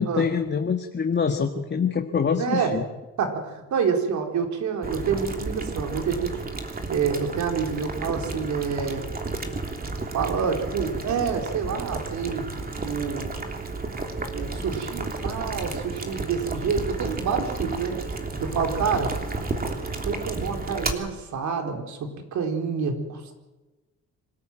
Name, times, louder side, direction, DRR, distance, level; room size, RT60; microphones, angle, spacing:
voice 1, 0.0-2.8, left 6 dB, 35° left, 3 dB, 1.9 m, -25 dB
voice 2, 2.4-2.7 3.2-6.4 6.9-9.0 10.1-12.5 12.8-13.4 14.3-18.0 18.4-19.2 20.0-23.3, right 6 dB, 70° right, 4 dB, 4.3 m, -27 dB
Boiling, 4.8-20.9, right 3 dB, 30° right, 3.2 m, -32 dB
25.5 x 13.5 x 9.2 m, 1.1 s
cardioid pair, 90°, 30 cm